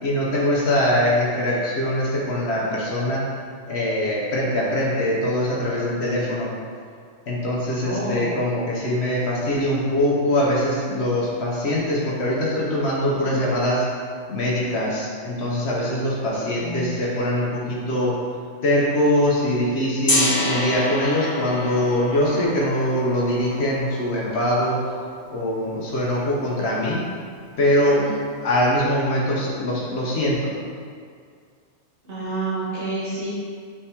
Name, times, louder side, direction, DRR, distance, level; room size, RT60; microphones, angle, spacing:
voice 1, 0.0-3.2 3.7-6.5 7.3-13.9 14.3-18.2 18.6-24.8 25.3-27.0 27.6-28.0 28.4-30.5, left 1 dB, 65° left, -5 dB, 1.1 m, -22 dB
voice 2, 7.7-8.3 13.3-13.4 16.6-16.9 27.8-28.1 32.0-33.3, right 2 dB, 70° right, -10 dB, 1.6 m, -29 dB
Gong, 20.1-26.0, left 1 dB, 25° left, 0.6 m, -28 dB
5.1 x 3.4 x 2.8 m, 2.1 s
omnidirectional pair, 1.2 m